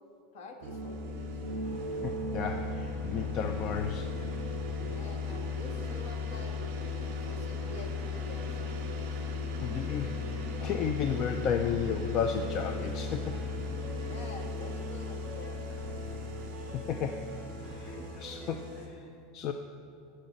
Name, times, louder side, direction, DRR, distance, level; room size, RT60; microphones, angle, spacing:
voice 1, 0.3-1.3 4.9-6.5 7.3-8.5 14.0-15.8, left 2 dB, 60° left, 4 dB, 1.5 m, -47 dB
sound 1, 0.6-18.9, left 3 dB, 50° right, 2.5 m, -36 dB
sound 2, 1.5-18.8, right 1 dB, 10° left, 1.8 m, -47 dB
voice 2, 2.0-4.1 9.6-13.3 16.7-17.3 17.8-19.5, left 7 dB, 30° left, 6 dB, 0.4 m, -33 dB
9.4 x 6.7 x 8.9 m, 2.7 s
supercardioid pair, 175°, 0 cm